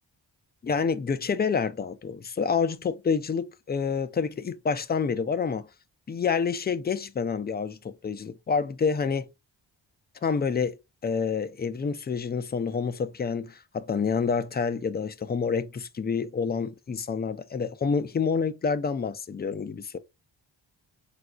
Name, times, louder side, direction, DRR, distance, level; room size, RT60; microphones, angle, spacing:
voice 1, 0.6-5.7 6.1-9.3 10.2-20.0, left 5 dB, 25° left, 0.3 m, -28 dB
4.0 x 2.4 x 2.3 m
cardioid pair, 50°, 46 cm